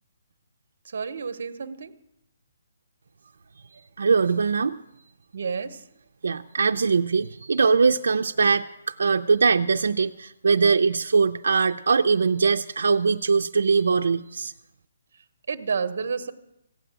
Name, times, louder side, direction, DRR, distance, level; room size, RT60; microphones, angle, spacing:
voice 1, 0.8-1.9 5.3-5.8 15.5-16.3, right 5 dB, 50° right, 12 dB, 0.9 m, -30 dB
voice 2, 4.0-4.8 6.2-14.5, right 5 dB, 80° right, 6 dB, 0.5 m, -21 dB
16.0 x 8.1 x 8.8 m, 0.86 s
hypercardioid pair, 180°, 0 cm